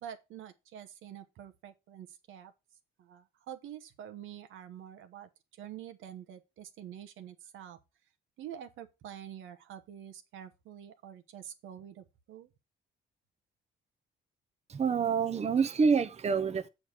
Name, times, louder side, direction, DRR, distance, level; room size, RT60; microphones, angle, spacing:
voice 1, 0.0-2.5 3.0-7.8 8.4-12.5, right 10 dB, 85° right, 1.1 m, -47 dB
voice 2, 14.7-16.7, right 5 dB, 35° right, 0.7 m, -27 dB
7.5 x 4.7 x 5.1 m
cardioid pair, 90°, 20 cm